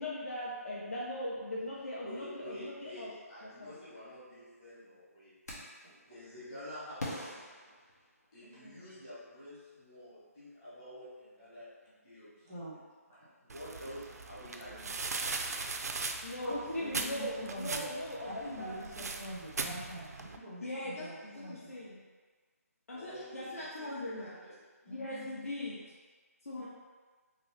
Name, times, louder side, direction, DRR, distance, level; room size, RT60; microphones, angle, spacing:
voice 1, 0.0-3.1 3.4-3.7 8.4-8.8 16.2-18.8 20.6-22.0 22.9-24.4 24.9-25.8 26.5-26.7, left 1 dB, 65° left, -7 dB, 0.7 m, -40 dB
voice 2, 2.0-5.3 5.9-7.5 8.3-12.5 13.4-15.4 22.9-24.6, equal, 15° left, -13 dB, 0.9 m, -49 dB
sound 1, 5.5-5.9 7.0-8.5, left 1 dB, 85° left, 1.0 m, -43 dB
voice 3, 12.4-12.8 13.1-13.3 16.0-17.9 18.3-21.7 24.9-25.3, equal, 15° right, -9 dB, 0.5 m, -45 dB
sound 2, 13.5-20.4, right 4 dB, 80° right, 0.4 m, -39 dB
2.9 x 2.7 x 3.2 m, 1.4 s
hypercardioid pair, 180°, 9 cm